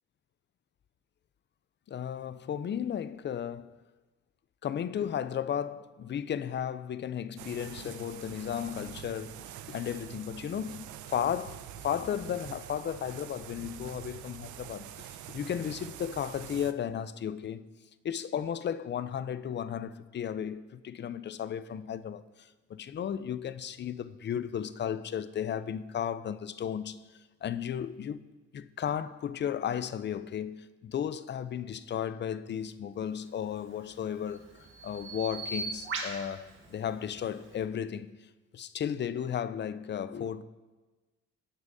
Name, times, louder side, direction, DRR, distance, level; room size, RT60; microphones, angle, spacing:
voice 1, 1.9-3.8 4.6-17.6 18.0-27.0 27.4-28.2 28.5-38.1 38.5-40.4, left 9 dB, 35° left, 0.4 m, -34 dB
sound 1, 7.4-16.7, right 11 dB, 75° right, 0.5 m, -45 dB
Bird vocalization bird call bird song, 33.4-37.7, right 3 dB, 40° right, 1.8 m, -41 dB
17.0 x 6.2 x 2.6 m
cardioid pair, 90°, 30 cm